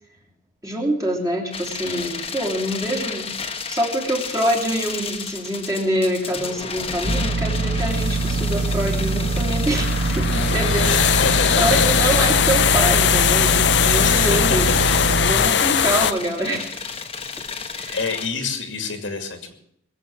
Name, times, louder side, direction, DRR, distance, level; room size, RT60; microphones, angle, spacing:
voice 1, 0.6-3.3 3.7-14.7 15.2-16.8 17.7-18.0 18.4-18.6, right 1 dB, 15° right, -1 dB, 3.0 m, -25 dB
sound 1, 1.5-18.3, left 5 dB, 30° left, 1.2 m, -33 dB
sound 2, 7.0-15.3, right 3 dB, 65° right, 1.8 m, -23 dB
sound 3, 9.7-16.1, left 9 dB, 65° left, 0.5 m, -19 dB
voice 2, 10.8-11.9 13.8-14.6 15.3-15.8 17.9-19.5, left 4 dB, 85° left, 6 dB, 2.5 m, -27 dB
21.5 x 8.0 x 7.2 m, 0.73 s
head